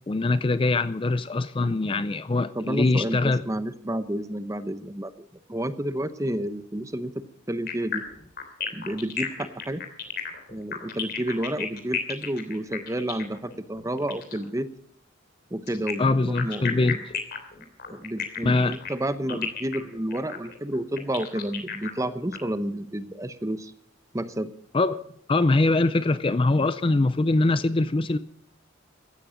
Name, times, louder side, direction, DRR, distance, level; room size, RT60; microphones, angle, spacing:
voice 1, 0.1-3.4 16.0-17.0 18.4-18.8 19.3-19.4 24.7-25.0 25.3-28.2, left 2 dB, 25° left, 14 dB, 0.4 m, -23 dB
voice 2, 2.5-8.0 8.7-9.8 10.5-14.7 15.5-17.0 17.9-23.7 24.1-24.5, right 1 dB, 15° right, 12 dB, 0.8 m, -30 dB
sound 1, 7.7-14.4 15.7-22.4, left 8 dB, 50° left, 3.1 m, -33 dB
16.0 x 13.0 x 5.1 m, 0.69 s
head